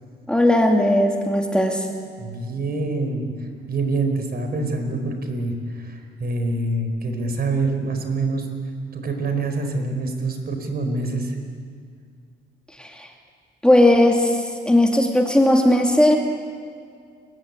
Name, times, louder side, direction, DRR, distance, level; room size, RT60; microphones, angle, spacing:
voice 1, 0.3-1.9 12.8-13.1 13.6-16.2, left 1 dB, 5° left, 2 dB, 2.5 m, -17 dB
voice 2, 2.2-3.3 3.7-8.5 8.9-11.4, right 2 dB, 50° right, 5 dB, 4.7 m, -25 dB
29.5 x 15.0 x 9.7 m, 2.2 s
cardioid pair, 90°, 20 cm